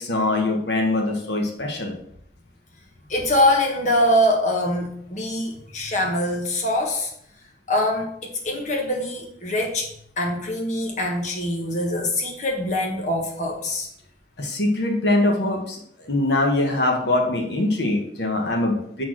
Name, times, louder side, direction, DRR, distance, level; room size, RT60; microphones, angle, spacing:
voice 1, 0.0-1.9 14.4-19.0, left 2 dB, 75° left, 1 dB, 1.3 m, -23 dB
voice 2, 3.1-7.1 7.7-9.9 10.2-13.9, left 1 dB, 40° left, 0 dB, 1.4 m, -23 dB
7.0 x 4.2 x 6.1 m, 0.70 s
head